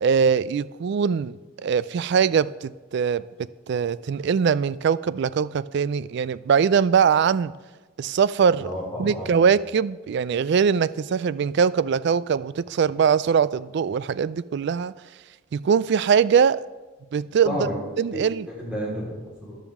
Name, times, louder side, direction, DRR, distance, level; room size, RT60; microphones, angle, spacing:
voice 1, 0.0-1.4 1.6-3.2 3.7-7.5 8.0-8.7 9.0-14.9 15.5-16.6 17.1-17.7 18.0-18.5, right 6 dB, 60° right, 0.3 m, -22 dB
voice 2, 8.6-9.4 17.4-17.8 18.1-19.6, equal, 5° right, 4.2 m, -31 dB
14.0 x 11.0 x 3.6 m
head